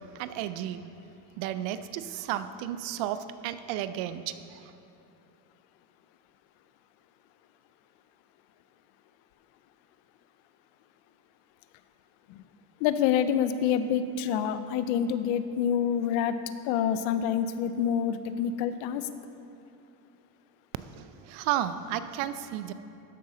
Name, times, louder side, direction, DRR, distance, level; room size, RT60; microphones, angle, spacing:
voice 1, 0.2-0.8 1.4-3.2 3.4-4.3 20.9-22.7, right 12 dB, 80° right, 12 dB, 0.6 m, -32 dB
voice 2, 12.8-16.4 16.6-19.1, left 8 dB, 85° left, 12 dB, 0.6 m, -27 dB
13.0 x 5.6 x 3.8 m, 2.7 s
supercardioid pair, 105°, 44 cm